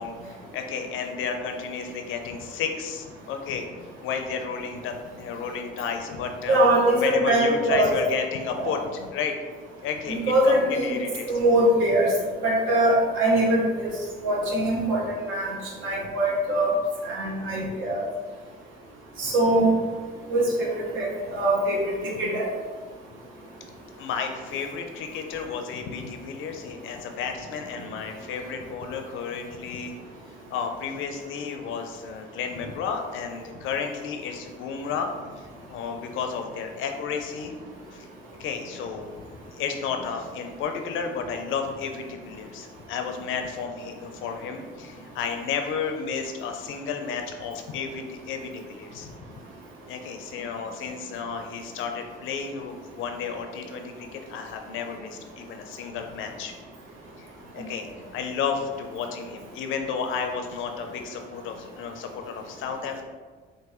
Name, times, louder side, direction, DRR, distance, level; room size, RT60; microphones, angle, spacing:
voice 1, 0.0-3.7 4.0-6.7 6.9-9.4 9.8-11.4 17.6-17.7 24.0-29.9 30.5-35.1 35.4-37.5 37.9-38.1 38.4-39.1 39.6-49.1 49.9-56.5 57.2-57.3 57.5-57.9 58.1-63.0, left 6 dB, 85° left, 5 dB, 0.4 m, -32 dB
voice 2, 6.5-7.9 8.6-8.8 10.1-11.0 11.3-12.1 12.4-13.9 14.2-15.5 15.8-16.7 17.0-18.0 19.2-19.7 20.3-20.7 20.9-21.8 22.0-22.5, right 1 dB, 80° right, -2 dB, 0.9 m, -22 dB
3.7 x 2.5 x 3.0 m, 1.5 s
cardioid pair, 90°, 20 cm